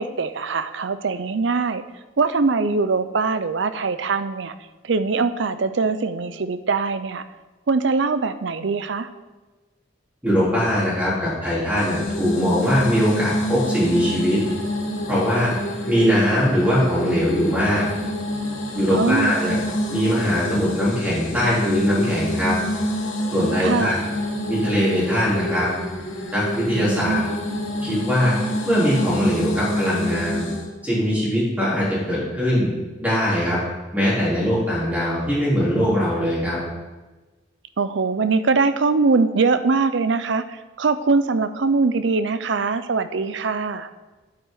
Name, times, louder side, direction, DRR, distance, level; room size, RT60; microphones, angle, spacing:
voice 1, 0.0-1.8 2.2-4.5 4.8-7.2 7.7-9.1 18.9-19.4 23.6-24.0 26.7-27.4 37.8-43.9, right 4 dB, 65° right, 12 dB, 0.5 m, -22 dB
voice 2, 10.2-14.4 15.1-15.5 15.9-17.9 18.7-19.6 19.9-22.5 23.3-24.0 24.5-25.7 26.3-27.2 27.8-28.4 28.7-30.5 30.8-32.7 33.0-33.6 33.9-36.6, equal, 10° right, -8 dB, 3.7 m, -21 dB
sound 1, 11.8-30.7, left 1 dB, 90° left, 2.1 m, -27 dB
9.6 x 8.5 x 3.9 m, 1.2 s
head